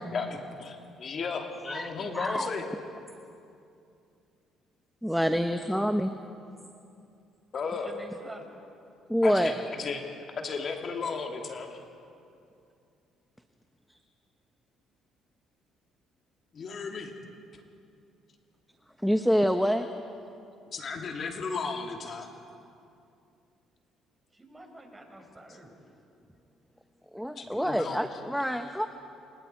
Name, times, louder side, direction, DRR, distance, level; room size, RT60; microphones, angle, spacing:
voice 1, 0.1-2.7 7.5-8.0 9.2-10.0 10.4-11.8 16.5-17.1 20.7-22.3 27.4-28.0, left 5 dB, 50° left, 2 dB, 2.8 m, -34 dB
voice 2, 1.7-2.5 5.0-6.1 9.1-9.5 19.0-19.9 27.1-28.9, equal, ahead, 7 dB, 1.2 m, -26 dB
voice 3, 7.8-8.5 24.3-25.7, right 1 dB, 20° right, 3 dB, 5.6 m, -47 dB
28.0 x 26.0 x 4.6 m, 2.6 s
hypercardioid pair, 55°, 0 cm